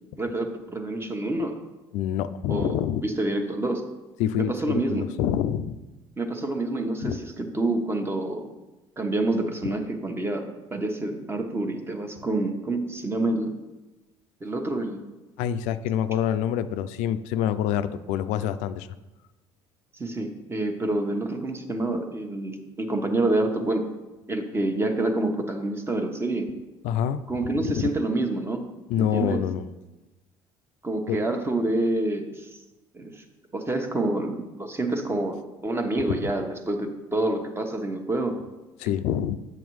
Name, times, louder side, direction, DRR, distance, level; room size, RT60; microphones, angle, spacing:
voice 1, 0.2-1.6 2.5-2.8 3.0-3.8 4.4-5.0 6.2-8.5 9.0-13.6 14.4-15.0 20.0-23.9 24.3-26.5 27.3-28.6 29.0-29.4 30.8-32.5 32.9-33.2 33.5-35.4 35.6-38.4, right 2 dB, 20° right, 4 dB, 1.1 m, -27 dB
voice 2, 1.9-3.0 4.2-5.8 7.0-7.2 9.6-9.7 15.4-18.9 26.8-27.3 27.6-27.9 28.9-29.7 31.1-31.2 36.1-36.3 38.8-39.4, left 10 dB, 80° left, 12 dB, 0.4 m, -26 dB
7.9 x 7.0 x 3.1 m, 1.1 s
supercardioid pair, 85°, 12 cm